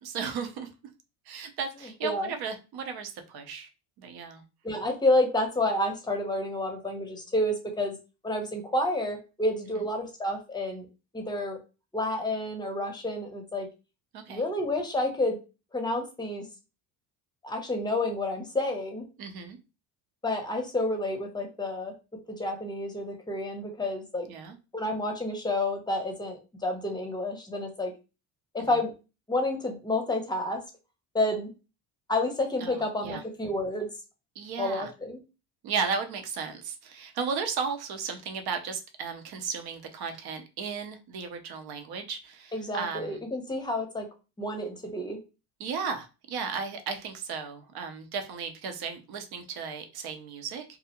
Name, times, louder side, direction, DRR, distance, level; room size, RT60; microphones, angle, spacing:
voice 1, 0.0-0.7 1.3-3.7 4.0-4.4 14.1-14.5 19.2-19.6 24.3-24.6 32.6-33.2 34.4-34.9 35.6-43.2 45.6-50.6, right 5 dB, 60° right, 6 dB, 0.7 m, -35 dB
voice 2, 2.0-2.3 4.6-8.0 8.2-10.9 11.1-11.6 11.9-13.7 14.3-15.4 15.7-16.4 17.4-19.0 20.2-21.9 22.4-24.3 24.7-27.9 28.5-28.9 29.3-30.6 31.1-31.5 32.1-33.9 34.6-35.2 42.5-44.1 44.4-45.2, left 1 dB, 10° left, 3 dB, 0.7 m, -29 dB
2.4 x 2.1 x 2.8 m, 0.31 s
supercardioid pair, 85°, 43 cm